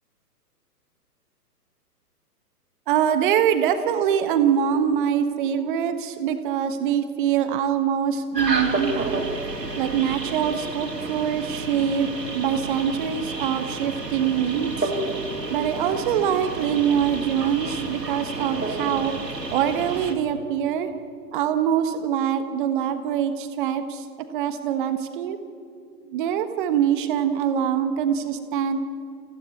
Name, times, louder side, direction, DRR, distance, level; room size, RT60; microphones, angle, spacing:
voice 1, 2.9-9.2 9.7-12.1 12.3-14.9 15.5-19.1 19.5-20.9 21.3-24.0 24.3-25.4 26.1-28.8, right 9 dB, 30° right, 9 dB, 1.4 m, -24 dB
sound 1, 8.3-20.1, right 2 dB, 85° right, 3.4 m, -30 dB
30.0 x 16.0 x 8.5 m, 2.3 s
figure-of-eight pair, 125°, 48 cm